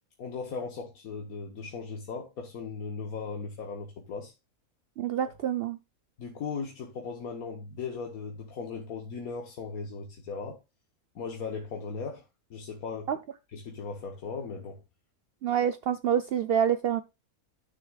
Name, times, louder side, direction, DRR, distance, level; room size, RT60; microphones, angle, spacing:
voice 1, 0.2-4.3 6.2-10.6 11.1-12.2 12.5-13.1 13.5-14.8, left 5 dB, 70° left, 1.6 m, -37 dB
voice 2, 5.0-5.8 13.1-13.2 15.4-17.0, right 9 dB, 75° right, 0.5 m, -27 dB
12.0 x 6.4 x 2.3 m
omnidirectional pair, 1.6 m